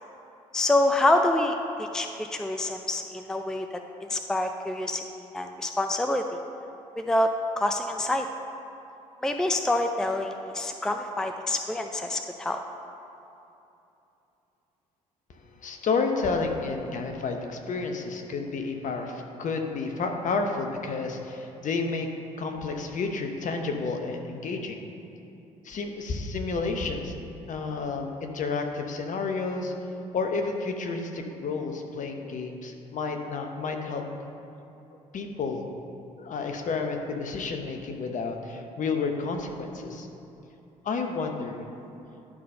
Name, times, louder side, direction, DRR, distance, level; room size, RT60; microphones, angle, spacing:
voice 1, 0.5-3.7 4.0-5.0 5.3-6.4 7.0-7.3 7.6-8.3 9.2-12.6, left 1 dB, 5° left, 5 dB, 0.5 m, -26 dB
voice 2, 15.3-22.1 22.4-24.8 25.6-27.1 27.5-29.7 30.1-34.0 35.1-35.7 36.2-40.1 40.8-41.6, left 4 dB, 45° left, 4 dB, 1.0 m, -31 dB
11.0 x 4.2 x 5.3 m, 2.9 s
hypercardioid pair, 55°, 18 cm